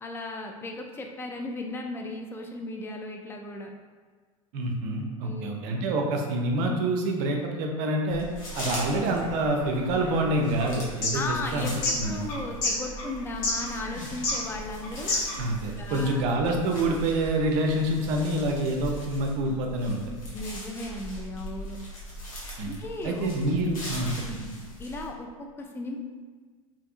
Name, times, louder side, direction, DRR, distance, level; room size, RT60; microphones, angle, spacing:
voice 1, 0.0-3.7 5.2-5.6 11.1-15.1 15.6-16.2 20.3-21.8 22.7-23.3 24.2-26.0, left 2 dB, 15° left, 2 dB, 0.3 m, -36 dB
voice 2, 4.5-8.3 8.6-11.7 12.0-12.2 15.4-20.0 22.6-22.7 23.0-24.4, right 1 dB, 50° right, 2 dB, 0.5 m, -27 dB
sound 1, 8.1-25.1, equal, 80° left, 0.9 m, -40 dB
sound 2, 8.5-15.5, left 2 dB, 50° left, 0.8 m, -31 dB
2.8 x 2.6 x 2.4 m, 1.5 s
hypercardioid pair, 85°, 18 cm